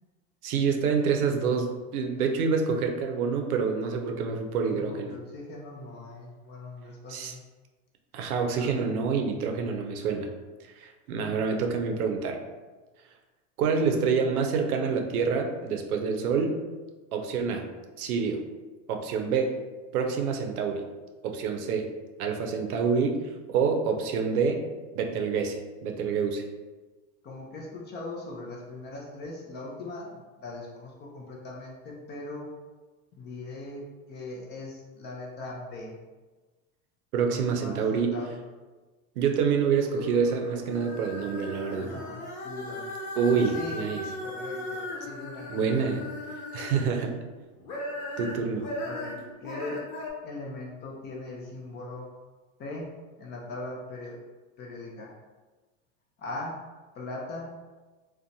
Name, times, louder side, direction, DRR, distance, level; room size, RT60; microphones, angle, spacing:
voice 1, 0.4-5.2 7.1-7.3 8.1-10.3 10.7-12.4 13.6-16.5 17.1-17.6 18.0-18.4 18.9-19.5 19.9-20.8 21.2-21.9 22.2-23.2 23.5-24.6 24.9-25.6 25.8-26.4 37.1-38.1 39.2-41.9 43.2-44.0 45.5-46.0 46.5-47.1 48.2-48.7, right 5 dB, 85° right, 4 dB, 0.6 m, -27 dB
voice 2, 4.7-7.4 8.5-8.8 27.2-32.5 33.1-36.0 37.2-38.4 41.8-42.9 43.4-43.8 44.2-45.5 47.9-48.1 48.8-49.8 50.2-52.1 52.6-54.2 54.6-55.1 56.2-56.6 57.0-57.5, left 2 dB, 25° left, -2 dB, 0.4 m, -40 dB
sound 1, 39.6-47.1 47.5-50.1, left 1 dB, 85° left, 0.8 m, -38 dB
2.7 x 2.2 x 2.6 m, 1.3 s
supercardioid pair, 115°, 43 cm